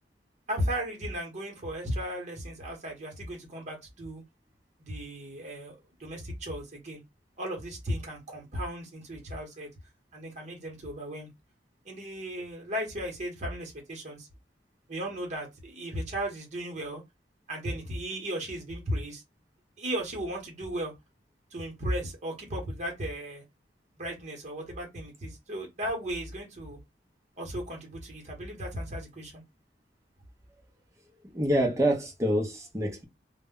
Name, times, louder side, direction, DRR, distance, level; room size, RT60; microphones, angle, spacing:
voice 1, 0.5-4.2 4.8-5.7 6.0-7.0 7.4-9.7 10.1-11.3 11.8-14.3 14.9-17.0 17.5-19.2 19.8-20.9 21.5-23.4 24.0-26.8 27.4-29.4, equal, 40° right, 0.9 m, -35 dB
voice 2, 31.3-33.0, right 1 dB, 15° right, 0.6 m, -26 dB
2.1 x 2.1 x 3.5 m
head